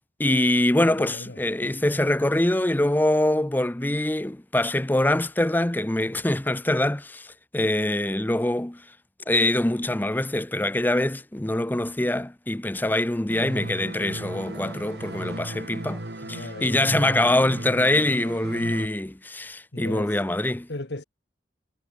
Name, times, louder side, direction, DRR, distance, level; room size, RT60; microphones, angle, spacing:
voice 1, 0.2-7.3 7.5-8.8 9.3-16.0 16.3-20.7, left 1 dB, 10° left, 0.6 m, -24 dB
voice 2, 0.8-1.4 16.2-16.8 19.7-20.2 20.7-21.0, left 2 dB, 70° left, 1.8 m, -37 dB
sound 1, 13.3-18.9, right 1 dB, 60° right, 2.2 m, -35 dB
head